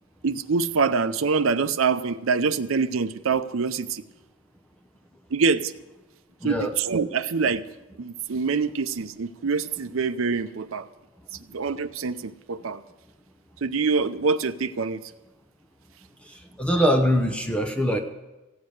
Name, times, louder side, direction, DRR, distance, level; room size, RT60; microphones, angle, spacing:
voice 1, 0.2-4.0 5.3-5.7 6.4-7.6 8.0-10.9 11.5-12.8 13.6-15.0, right 5 dB, 80° right, 13 dB, 0.6 m, -25 dB
voice 2, 6.4-6.7 16.3-18.0, equal, 5° left, 4 dB, 0.7 m, -23 dB
15.5 x 8.8 x 6.5 m, 1.1 s
head